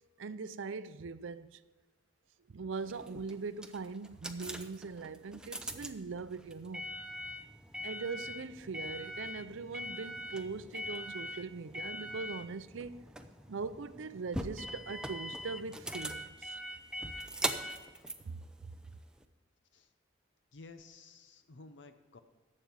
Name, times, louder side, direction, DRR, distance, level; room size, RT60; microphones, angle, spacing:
voice 1, 0.2-1.6 2.5-6.9 7.8-13.1 13.5-16.6 18.2-18.4, right 4 dB, 80° right, 0.5 m, -41 dB
sound 1, 2.8-19.2, equal, 5° right, 0.6 m, -42 dB
voice 2, 20.5-22.2, left 3 dB, 65° left, 0.7 m, -53 dB
11.5 x 7.7 x 6.8 m
head